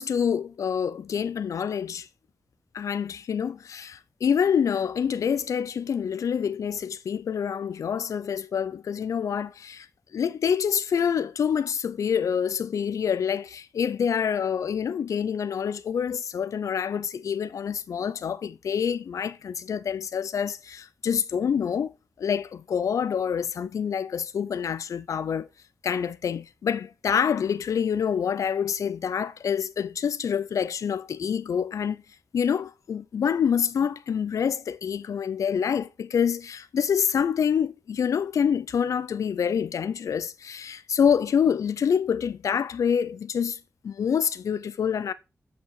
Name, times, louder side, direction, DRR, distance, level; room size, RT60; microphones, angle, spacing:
voice 1, 0.0-2.1 2.7-9.9 10.1-21.9 22.2-25.5 25.8-32.0 32.3-43.6 43.8-45.1, left 7 dB, 85° left, 0.4 m, -26 dB
8.1 x 4.7 x 4.7 m
wide cardioid pair, 100°, 5 cm